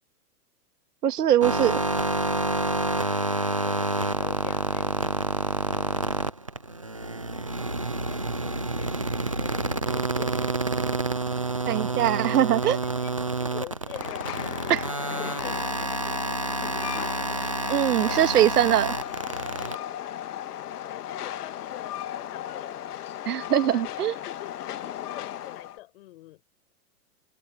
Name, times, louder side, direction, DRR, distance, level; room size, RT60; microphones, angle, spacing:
voice 1, 1.0-1.8 11.7-12.8 14.7-14.8 17.7-18.9 23.3-24.1, right 11 dB, 75° right, 1.9 m, -22 dB
sound 1, 1.4-19.7, right 2 dB, 25° right, 0.4 m, -28 dB
voice 2, 3.6-5.2 5.7-6.3 8.0-8.9 9.4-10.6 12.3-15.9 20.1-22.8 23.5-26.4, left 18 dB, 40° left, 7.8 m, -46 dB
Train, 13.9-25.8, left 11 dB, 75° left, 1.6 m, -36 dB
hypercardioid pair, 175°, 47 cm